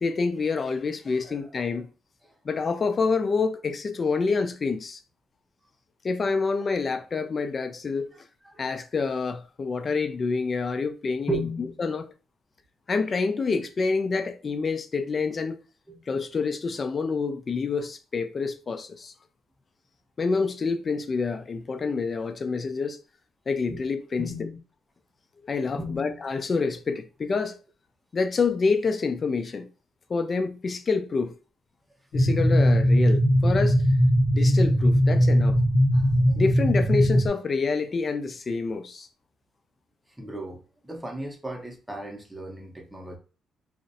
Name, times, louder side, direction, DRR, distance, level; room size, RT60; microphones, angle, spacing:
voice 1, 0.0-1.9 2.5-5.0 6.0-8.1 8.6-11.4 11.8-12.1 12.9-15.6 16.1-19.1 20.2-23.0 23.5-24.5 25.4-27.6 28.1-29.7 30.1-31.4 32.1-33.8 34.3-35.6 36.4-39.1, left 4 dB, 40° left, 0.3 m, -27 dB
voice 2, 11.3-11.7 15.9-16.0 23.7-23.8 24.2-24.6 25.8-26.2 35.9-36.4 40.2-43.2, right 1 dB, 5° right, 0.6 m, -35 dB
sound 1, 32.1-37.3, equal, 70° left, 0.8 m, -20 dB
2.4 x 2.0 x 2.6 m
cardioid pair, 90°, 0 cm